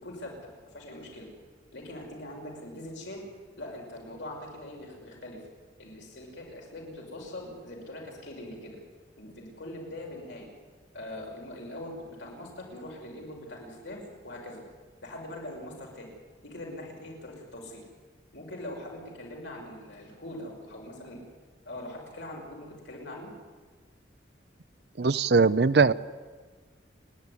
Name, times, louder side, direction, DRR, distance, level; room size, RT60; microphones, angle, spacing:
voice 1, 0.0-1.3 1.7-3.3 3.6-5.4 5.8-8.8 9.2-10.5 10.9-14.6 15.0-16.1 16.4-17.8 18.3-21.2 21.6-23.3, left 1 dB, 90° left, -1 dB, 5.6 m, -42 dB
voice 2, 25.0-25.9, right 4 dB, 65° right, 17 dB, 0.6 m, -21 dB
30.0 x 10.0 x 9.7 m, 1.5 s
head